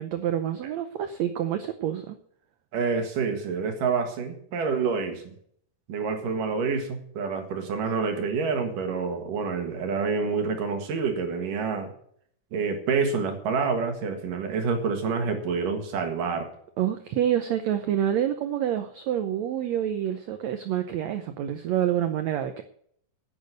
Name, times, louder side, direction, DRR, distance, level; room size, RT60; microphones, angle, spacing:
voice 1, 0.0-2.2 16.8-22.6, right 10 dB, 90° right, 9 dB, 1.5 m, -27 dB
voice 2, 2.7-5.3 5.9-11.9 12.5-16.5, right 5 dB, 70° right, 5 dB, 3.2 m, -27 dB
10.5 x 8.8 x 8.1 m, 0.66 s
omnidirectional pair, 4.1 m